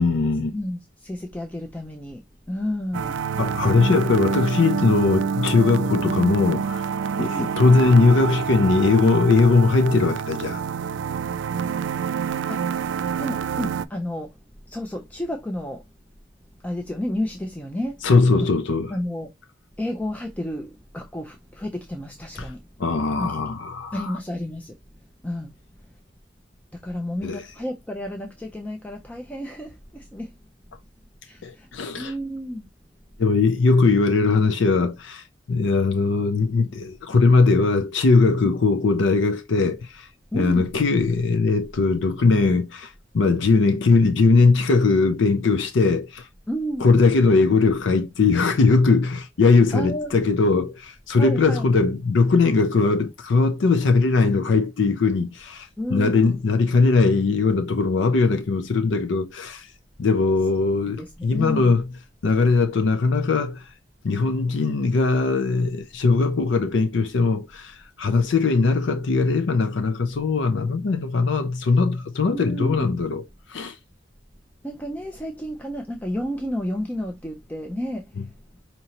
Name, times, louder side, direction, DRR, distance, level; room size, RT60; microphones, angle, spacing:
voice 1, 0.0-0.5 3.4-6.9 7.2-10.6 18.0-18.9 22.4-22.5 22.8-24.2 27.2-27.4 31.4-32.1 33.2-40.1 40.3-46.3 46.8-59.7 60.0-61.8 62.2-63.7 64.0-73.8, left 3 dB, 75° left, 0.5 m, -20 dB
voice 2, 0.5-3.3 7.2-7.6 12.5-12.9 13.2-14.4 14.7-15.8 16.6-18.0 18.3-18.5 18.9-19.3 19.8-22.6 23.2-23.4 23.9-24.8 25.2-25.5 26.8-30.4 31.2-31.7 32.0-32.7 40.3-40.7 46.5-46.9 49.7-50.1 51.2-51.7 55.8-56.4 60.7-61.7 72.3-73.0 74.6-78.1, equal, 10° left, 0.5 m, -31 dB
sound 1, 2.9-13.9, right 7 dB, 80° right, 0.3 m, -27 dB
5.3 x 2.9 x 2.9 m
head